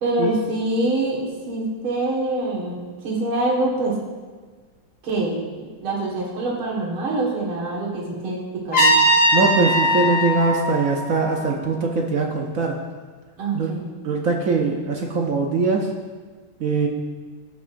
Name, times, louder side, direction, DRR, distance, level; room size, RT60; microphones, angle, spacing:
voice 1, 0.0-4.0 5.0-9.0 13.4-13.8, right 2 dB, 85° right, -3 dB, 2.6 m, -25 dB
Trumpet, 8.7-11.7, equal, 70° left, 3.4 m, -20 dB
voice 2, 9.3-12.8 13.5-13.7 14.0-15.9 16.6-16.9, right 4 dB, 60° right, 1 dB, 0.9 m, -22 dB
16.5 x 6.0 x 2.6 m, 1.4 s
omnidirectional pair, 2.3 m